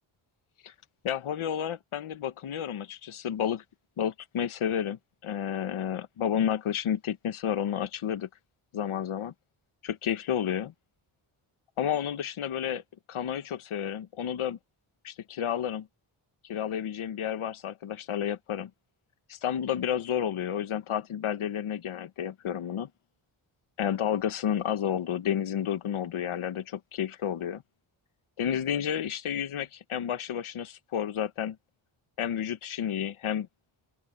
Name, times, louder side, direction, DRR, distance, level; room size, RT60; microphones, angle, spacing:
voice 1, 1.0-3.6 4.0-8.3 8.7-9.3 9.8-10.7 11.8-12.8 13.1-14.6 15.0-15.9 16.5-18.7 19.3-22.9 23.8-27.6 28.4-31.6 32.2-33.5, left 9 dB, 90° left, 1.4 m, -31 dB
open air
wide cardioid pair, 100°, 48 cm